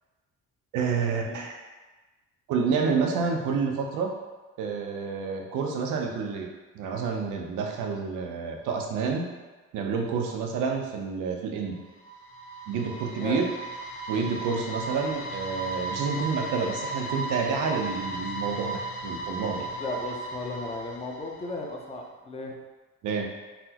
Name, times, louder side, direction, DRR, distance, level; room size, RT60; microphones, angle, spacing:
voice 1, 0.7-1.5 2.5-4.1 4.6-6.5 6.7-9.3 9.7-11.7 12.7-13.4 14.1-19.7 23.0-23.3, right 5 dB, 90° right, 2 dB, 0.5 m, -29 dB
sound 1, 11.7-21.8, right 2 dB, 70° left, 0.7 m, -36 dB
voice 2, 19.8-22.5, left 3 dB, 20° left, 0 dB, 0.5 m, -35 dB
4.1 x 2.0 x 2.8 m, 1.2 s
cardioid pair, 90°, 30 cm